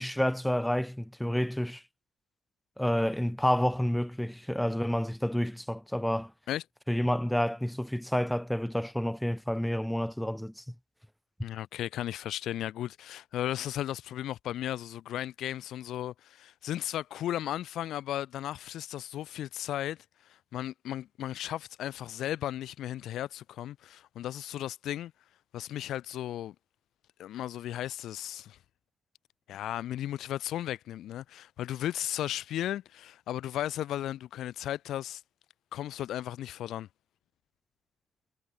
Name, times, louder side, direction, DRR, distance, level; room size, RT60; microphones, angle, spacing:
voice 1, 0.0-1.8 2.8-6.3 6.9-10.6, equal, 5° left, 1.8 m, -29 dB
voice 2, 11.4-20.0 20.5-25.1 25.5-26.5 27.2-28.6 29.5-35.2 35.7-36.9, left 12 dB, 80° left, 5.9 m, -35 dB
cardioid pair, 90°, 0 cm